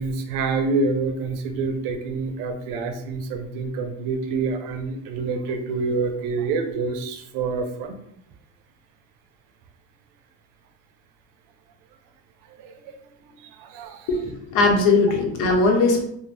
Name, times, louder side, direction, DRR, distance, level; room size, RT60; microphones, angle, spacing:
voice 1, 0.0-7.9 12.6-12.9 13.6-14.1, right 4 dB, 80° right, 7 dB, 0.5 m, -27 dB
voice 2, 14.1-16.0, left 3 dB, 70° left, 2 dB, 0.8 m, -19 dB
2.5 x 2.1 x 3.2 m, 0.72 s
cardioid pair, 115°, 32 cm